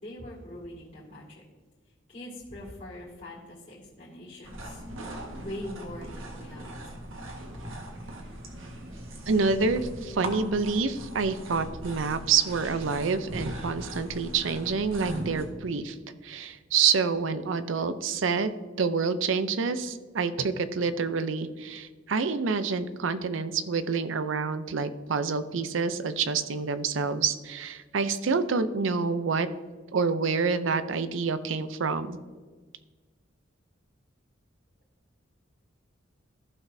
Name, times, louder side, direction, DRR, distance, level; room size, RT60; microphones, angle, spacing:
voice 1, 0.0-1.4 2.1-7.0, left 1 dB, 45° left, -7 dB, 2.1 m, -43 dB
sound 1, 4.4-15.4, right 1 dB, 90° right, 1.5 m, -39 dB
voice 2, 9.3-16.0 16.2-18.5 18.8-29.5 29.9-32.2, right 5 dB, 75° right, 12 dB, 0.6 m, -27 dB
15.0 x 6.1 x 2.7 m, 1.4 s
head